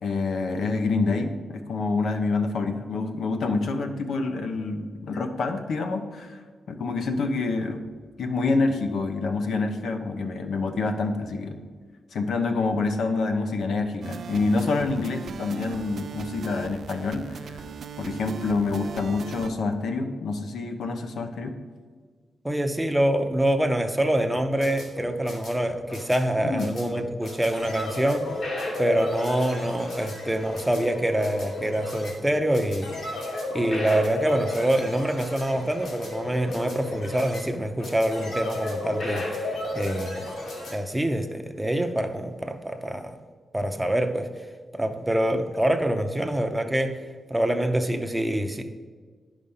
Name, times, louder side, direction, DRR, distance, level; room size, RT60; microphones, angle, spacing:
voice 1, 0.0-6.4 6.7-7.8 8.2-11.5 12.1-17.6 18.0-21.5 26.4-26.7, left 3 dB, 80° left, 6 dB, 0.9 m, -27 dB
sound 1, 14.0-19.5, right 6 dB, 60° right, 0.4 m, -38 dB
voice 2, 22.4-28.3 28.8-33.2 33.5-40.1 40.7-43.2 43.5-44.4 44.7-47.0 47.3-48.6, right 1 dB, 5° right, 6 dB, 0.6 m, -25 dB
sound 2, 24.3-40.7, left 2 dB, 65° left, 2.4 m, -33 dB
10.5 x 5.1 x 5.6 m, 1.5 s
wide cardioid pair, 155°, 0 cm